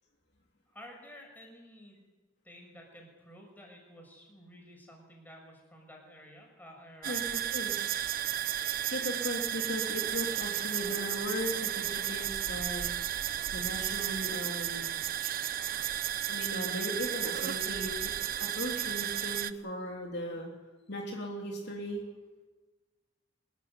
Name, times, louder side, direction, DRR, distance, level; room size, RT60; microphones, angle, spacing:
voice 1, 0.7-2.0 2.4-7.2, equal, 10° left, 0 dB, 6.4 m, -52 dB
voice 2, 7.0-8.0 8.9-12.9 13.5-14.9 16.3-18.1 18.4-20.5 20.9-22.0, equal, 55° left, 0 dB, 3.3 m, -37 dB
sound 1, 7.0-19.5, right 11 dB, 45° right, 0.6 m, -33 dB
25.5 x 14.0 x 9.8 m, 1.2 s
head